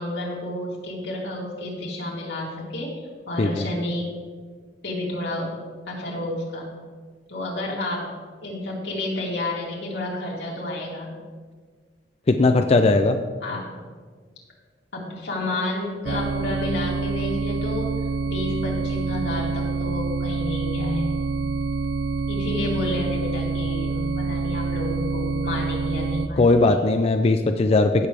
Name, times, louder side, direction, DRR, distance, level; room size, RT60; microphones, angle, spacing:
voice 1, 0.0-2.9 3.3-4.1 4.8-5.5 5.9-6.7 7.3-8.1 8.4-11.1 12.4-12.7 13.4-13.7 14.9-18.0 18.3-21.2 22.3-26.8, left 1 dB, 85° left, -4 dB, 2.9 m, -30 dB
voice 2, 12.3-13.2 26.4-28.1, left 3 dB, 35° left, 6 dB, 0.4 m, -18 dB
sound 1, 16.0-26.3, right 4 dB, 75° right, 0.5 m, -27 dB
16.0 x 6.8 x 3.3 m, 1.6 s
head